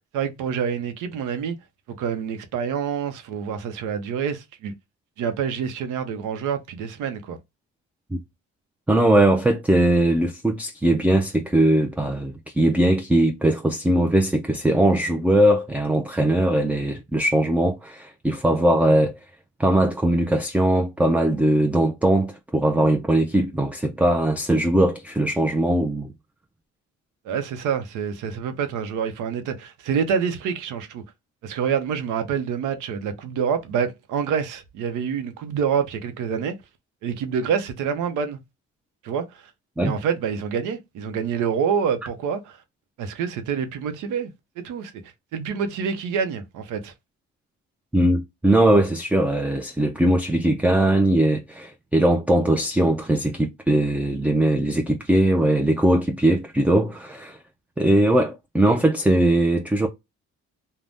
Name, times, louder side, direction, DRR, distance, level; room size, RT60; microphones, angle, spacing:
voice 1, 0.1-1.6 2.0-4.7 5.2-7.4 27.2-31.0 31.4-36.5 37.0-38.4 39.0-39.4 39.8-42.6 43.0-44.9 45.3-46.9, right 7 dB, 90° right, 0.7 m, -27 dB
voice 2, 8.9-19.1 19.6-26.1 39.8-39.9 47.9-57.4 57.8-59.9, right 1 dB, 5° right, 0.3 m, -20 dB
2.5 x 2.1 x 3.3 m
cardioid pair, 90°, 30 cm